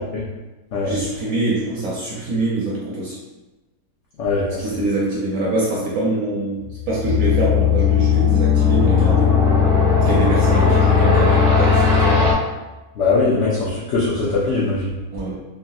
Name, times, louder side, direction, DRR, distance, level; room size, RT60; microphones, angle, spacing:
voice 1, 0.8-3.2 4.6-9.3 10.0-12.3 15.1-15.4, right 2 dB, 70° right, -5 dB, 0.8 m, -24 dB
voice 2, 4.2-4.6 13.0-14.9, left 3 dB, 85° left, -7 dB, 0.6 m, -20 dB
sound 1, 6.6-12.3, left 6 dB, 90° right, 0.5 m, -16 dB
3.7 x 2.1 x 2.6 m, 1.1 s
omnidirectional pair, 1.9 m